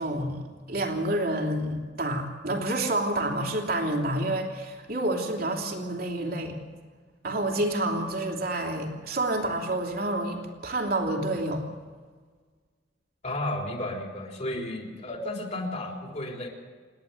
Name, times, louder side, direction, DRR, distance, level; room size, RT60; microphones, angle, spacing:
voice 1, 0.0-6.6 7.2-11.7, right 1 dB, 55° right, 2 dB, 3.1 m, -29 dB
voice 2, 13.2-16.5, left 1 dB, 40° left, 0 dB, 4.0 m, -33 dB
28.5 x 10.5 x 9.5 m, 1.5 s
head